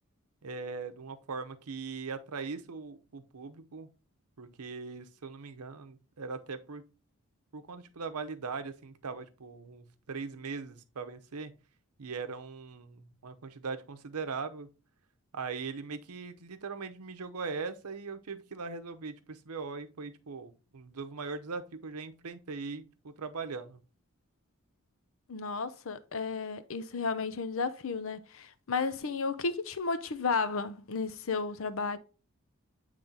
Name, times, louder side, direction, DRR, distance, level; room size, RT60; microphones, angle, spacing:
voice 1, 0.4-3.9 4.4-6.8 7.5-11.5 12.0-14.7 15.3-23.8, right 4 dB, 90° right, 0.7 m, -40 dB
voice 2, 25.3-32.0, left 4 dB, 65° left, 0.6 m, -33 dB
8.6 x 3.2 x 3.9 m
head